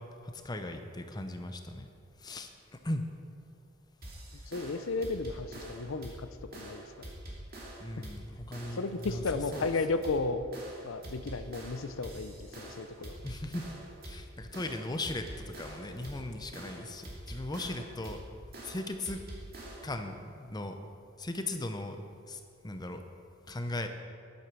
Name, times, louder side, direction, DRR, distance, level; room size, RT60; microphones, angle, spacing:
voice 1, 0.2-1.9 2.2-2.5 2.8-3.0 7.8-9.2 9.5-9.7 13.2-13.7 14.0-18.2 18.6-19.2 19.8-20.8 21.2-23.0 23.5-23.9, left 1 dB, 20° left, 6 dB, 0.6 m, -38 dB
sound 1, 4.0-20.0, right 1 dB, 45° right, 2.4 m, -45 dB
voice 2, 4.5-7.1 8.0-8.1 8.7-10.4 10.8-13.2, left 3 dB, 75° left, 10 dB, 0.6 m, -34 dB
10.5 x 8.4 x 6.2 m, 2.5 s
head